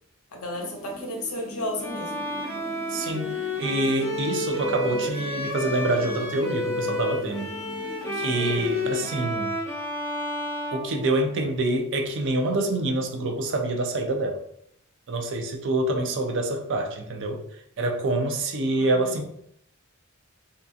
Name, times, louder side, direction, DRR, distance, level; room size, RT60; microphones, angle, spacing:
voice 1, 0.3-2.3 8.3-8.6 18.7-19.2, left 1 dB, 70° left, 1 dB, 0.7 m, -33 dB
sound 1, 0.5-9.3, equal, 25° right, 0.8 m, -42 dB
Bowed string instrument, 1.8-11.6, left 1 dB, 10° left, 0.6 m, -31 dB
voice 2, 2.9-7.5 8.1-9.6 10.7-14.4 15.1-17.4 17.8-19.2, right 2 dB, 55° right, 3 dB, 0.4 m, -26 dB
2.7 x 2.4 x 2.3 m, 0.70 s
head